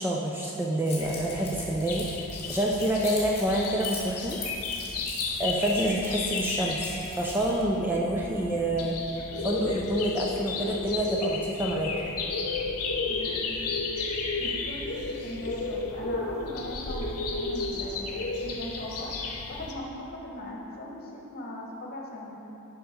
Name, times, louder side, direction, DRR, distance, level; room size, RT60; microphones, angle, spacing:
voice 1, 0.0-4.4 5.4-9.0 9.4-12.2, right 1 dB, 10° right, -2 dB, 0.4 m, -28 dB
Keys jangling, 0.9-7.6, left 3 dB, 25° left, 1.7 m, -41 dB
sound 1, 1.0-19.7, left 3 dB, 85° left, 0.8 m, -33 dB
voice 2, 13.1-13.6 14.4-19.1 19.5-22.4, left 1 dB, 45° left, -3 dB, 1.2 m, -39 dB
7.2 x 5.2 x 5.1 m, 3.0 s
head